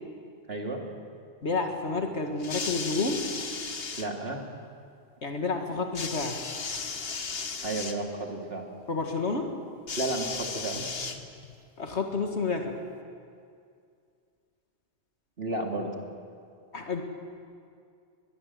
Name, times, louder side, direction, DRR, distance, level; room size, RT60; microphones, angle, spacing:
voice 1, 0.5-0.8 4.0-4.4 7.6-8.7 10.0-11.0 15.4-16.0, right 2 dB, 60° right, 1 dB, 2.9 m, -32 dB
voice 2, 1.4-3.3 5.2-6.4 8.9-9.5 11.8-12.8 16.7-17.0, left 3 dB, 80° left, 4 dB, 2.1 m, -30 dB
sound 1, 2.4-4.1 5.9-8.0 9.9-11.6 12.5-12.6, left 5 dB, 60° left, 1.5 m, -35 dB
22.0 x 21.0 x 7.6 m, 2.3 s
omnidirectional pair, 1.1 m